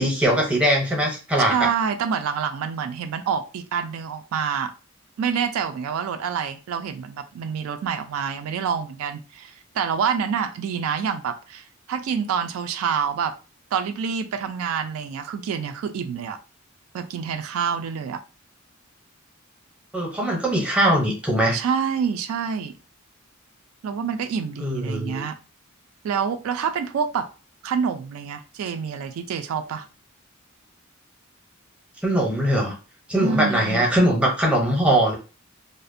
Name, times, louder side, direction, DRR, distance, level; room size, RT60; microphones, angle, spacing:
voice 1, 0.0-1.7 19.9-21.6 24.6-25.2 32.0-32.7 33.1-35.1, right 1 dB, 5° right, -1 dB, 0.6 m, -21 dB
voice 2, 1.5-4.7 5.2-13.3 13.7-16.4 16.9-18.2 21.5-22.8 23.8-25.4 26.0-27.3 27.6-29.9 33.1-33.8, right 7 dB, 85° right, 10 dB, 0.3 m, -27 dB
2.5 x 2.0 x 2.5 m, 0.33 s
head